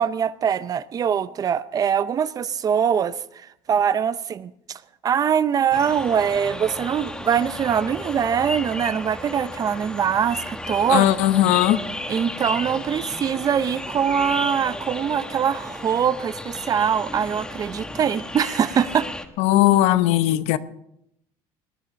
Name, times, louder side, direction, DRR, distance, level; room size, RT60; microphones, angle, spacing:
voice 1, 0.0-3.2 3.7-11.1 12.1-19.1, right 8 dB, 35° right, 0.6 m, -23 dB
sound 1, 5.7-19.2, left 1 dB, 5° left, 1.3 m, -34 dB
voice 2, 10.9-11.8 19.4-20.6, left 14 dB, 75° left, 0.8 m, -18 dB
20.0 x 9.9 x 5.2 m
cardioid pair, 125°, 11 cm